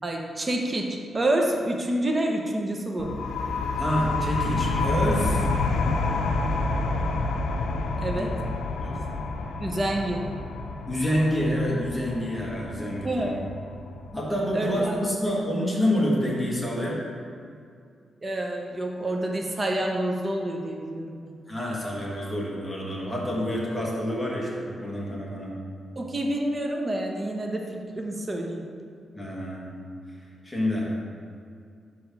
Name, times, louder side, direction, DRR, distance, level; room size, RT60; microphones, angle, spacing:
voice 1, 0.0-3.1 8.0-8.3 9.6-10.2 13.0-13.4 14.5-15.0 18.2-21.3 26.0-28.6, right 1 dB, 25° right, 1 dB, 0.8 m, -28 dB
sound 1, 3.0-14.4, left 3 dB, 70° left, 0.6 m, -28 dB
voice 2, 3.7-5.5 8.2-8.3 8.8-9.0 10.9-13.4 14.1-17.0 21.5-25.6 29.1-29.7 30.4-30.9, equal, 5° left, -5 dB, 1.5 m, -27 dB
5.9 x 5.0 x 5.3 m, 2.3 s
wide cardioid pair, 130°, 0 cm